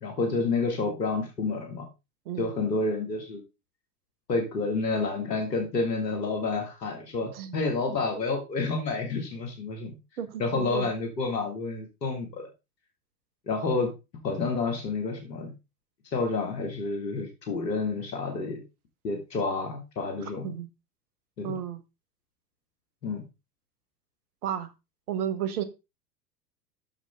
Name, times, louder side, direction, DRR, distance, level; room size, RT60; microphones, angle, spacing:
voice 1, 0.0-1.9 2.4-3.4 4.3-10.0 10.4-12.5 13.5-13.9 14.2-15.5 16.1-18.6 19.0-20.5 21.4-21.6 23.0-23.3, left 3 dB, 80° left, 2.2 m, -29 dB
voice 2, 10.2-10.9 20.4-20.7 21.4-21.8 24.4-24.7 25.1-25.6, right 9 dB, 65° right, 1.3 m, -32 dB
7.3 x 6.7 x 3.6 m
figure-of-eight pair, 90°, 49 cm